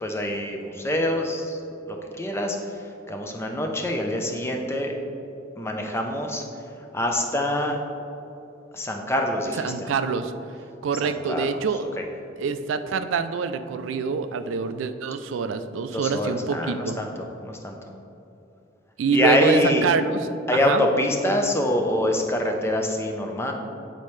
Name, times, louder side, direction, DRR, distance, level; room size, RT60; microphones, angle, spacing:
voice 1, 0.0-1.6 1.9-4.9 5.6-6.4 6.9-7.8 8.7-9.7 11.0-11.4 12.0-12.1 15.9-17.8 19.1-19.9 20.5-23.5, left 1 dB, 15° left, 2 dB, 0.5 m, -25 dB
voice 2, 9.6-10.3 10.8-11.8 12.4-17.0 19.0-20.2 20.5-20.8, right 5 dB, 75° right, 10 dB, 0.3 m, -25 dB
8.4 x 4.2 x 3.1 m, 2.8 s
head